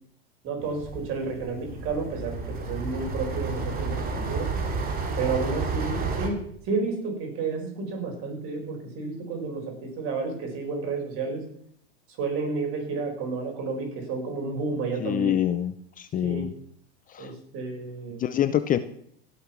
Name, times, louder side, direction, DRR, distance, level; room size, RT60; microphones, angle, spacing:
voice 1, 0.4-4.5 5.2-6.4 6.6-11.4 12.2-15.4 16.2-16.5 17.2-18.2, right 4 dB, 45° right, 2 dB, 5.4 m, -31 dB
sound 1, 0.6-6.3, right 3 dB, 30° right, 2.7 m, -31 dB
voice 2, 15.0-16.5 17.1-17.3 18.2-18.8, left 11 dB, 25° left, 12 dB, 0.7 m, -26 dB
17.0 x 7.2 x 6.1 m, 0.66 s
supercardioid pair, 120°, 30 cm